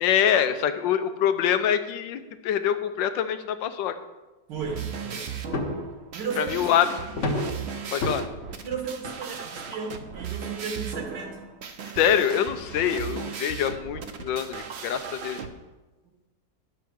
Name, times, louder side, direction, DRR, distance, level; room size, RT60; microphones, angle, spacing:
voice 1, 0.0-4.0 6.4-6.9 7.9-8.2 11.9-15.4, left 9 dB, 85° left, 10 dB, 1.4 m, -25 dB
sound 1, 4.5-15.5, right 6 dB, 55° right, 0.8 m, -37 dB
voice 2, 4.5-5.3 6.1-6.6 8.6-11.4, right 5 dB, 75° right, 1 dB, 1.8 m, -34 dB
sound 2, 5.5-5.9 7.2-7.6 8.0-8.2 9.0-9.1 9.6-9.7 10.0-10.1 10.7-10.8, left 2 dB, 50° left, 1.2 m, -28 dB
11.0 x 5.7 x 6.3 m, 1.1 s
omnidirectional pair, 1.9 m